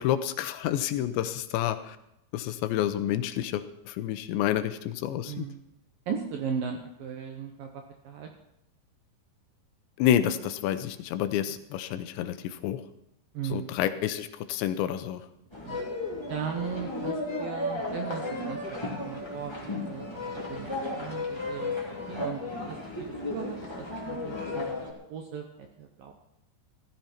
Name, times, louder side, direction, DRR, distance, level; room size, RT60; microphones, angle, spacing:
voice 1, 0.0-2.0 2.3-5.5 10.0-12.8 13.5-15.2, left 11 dB, 80° left, 10 dB, 3.0 m, -29 dB
voice 2, 5.3-5.6 6.1-8.3 13.3-13.7 15.6-15.8 16.3-21.8 22.1-26.1, right 7 dB, 75° right, 4 dB, 2.2 m, -37 dB
sound 1, 15.5-24.9, left 2 dB, 5° left, 2.3 m, -34 dB
16.0 x 14.0 x 4.4 m, 0.82 s
omnidirectional pair, 5.3 m